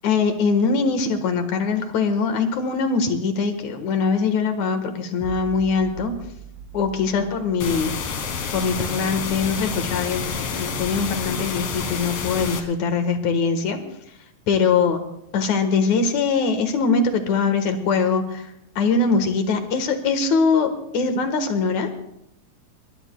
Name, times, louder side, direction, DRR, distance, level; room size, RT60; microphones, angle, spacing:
voice 1, 0.0-6.1 6.7-7.9 8.5-13.8 14.5-15.0 15.3-18.5 18.8-21.9, left 4 dB, 75° left, 7 dB, 2.9 m, -22 dB
sound 1, 5.2-8.6, right 4 dB, 70° right, 3.4 m, -41 dB
sound 2, 7.6-12.6, left 6 dB, 60° left, 2.3 m, -28 dB
22.5 x 21.0 x 2.3 m, 0.79 s
omnidirectional pair, 3.4 m